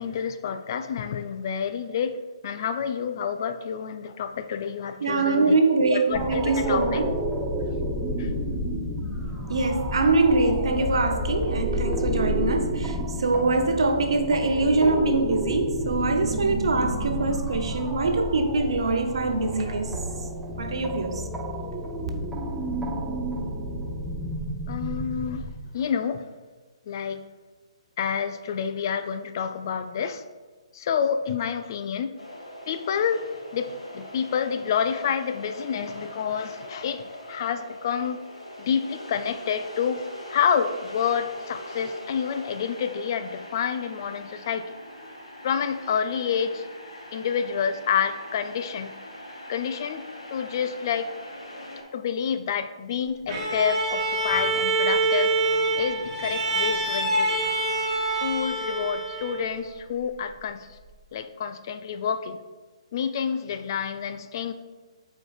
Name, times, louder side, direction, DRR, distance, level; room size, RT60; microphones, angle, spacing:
voice 1, 0.0-2.2 2.4-5.6 5.9-7.0 8.2-8.3 24.7-25.5 25.7-26.3 26.9-27.2 28.0-30.2 30.7-32.1 32.7-38.2 38.6-44.7 45.4-46.6 47.1-49.0 49.5-50.0 50.3-51.1 51.9-55.3 55.8-57.3 58.2-60.7 61.1-62.4 62.9-64.5, left 7 dB, 40° left, 9 dB, 0.4 m, -28 dB
voice 2, 5.0-7.1 9.5-20.0 20.6-21.2, right 3 dB, 60° right, 5 dB, 0.8 m, -23 dB
sound 1, 6.1-25.5, equal, 5° right, 0.7 m, -30 dB
sound 2, 32.2-51.8, left 1 dB, 80° left, 1.8 m, -42 dB
Bowed string instrument, 53.3-59.6, right 2 dB, 25° right, 2.1 m, -26 dB
11.5 x 4.5 x 2.4 m, 1.3 s
figure-of-eight pair, 135°, 3 cm